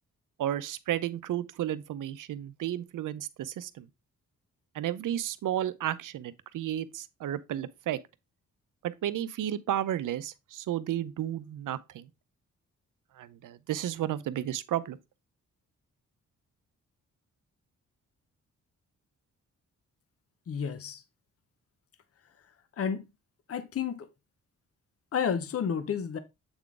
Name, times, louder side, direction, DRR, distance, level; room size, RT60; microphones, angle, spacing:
voice 1, 0.4-3.9 4.7-8.0 9.0-12.1 13.2-15.0, right 11 dB, 85° right, 0.6 m, -33 dB
voice 2, 20.5-21.0 22.8-23.0 23.5-24.1 25.1-26.2, left 7 dB, 50° left, 0.7 m, -31 dB
7.9 x 3.8 x 3.5 m
cardioid pair, 95°, 31 cm